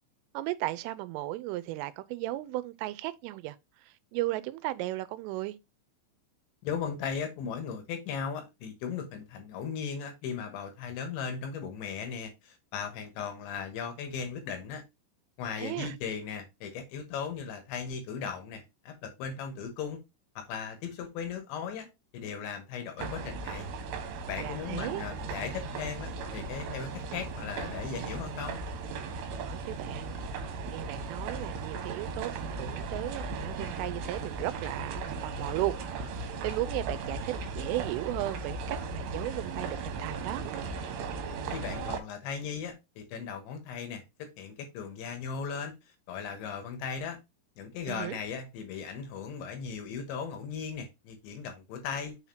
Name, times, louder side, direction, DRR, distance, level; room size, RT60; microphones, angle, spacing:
voice 1, 0.3-3.6 3.8-5.6 15.6-15.9 24.4-25.0 29.4-30.2 30.7-40.5 47.9-48.2, right 16 dB, 90° right, 3.2 m, -35 dB
voice 2, 6.6-14.8 15.4-20.0 20.4-21.9 22.1-23.7 24.3-28.6 41.5-45.7 46.1-47.2 47.6-52.2, left 6 dB, 75° left, 3.3 m, -37 dB
sound 1, 23.0-42.0, right 4 dB, 70° right, 3.1 m, -37 dB
6.7 x 5.7 x 2.8 m
omnidirectional pair, 5.7 m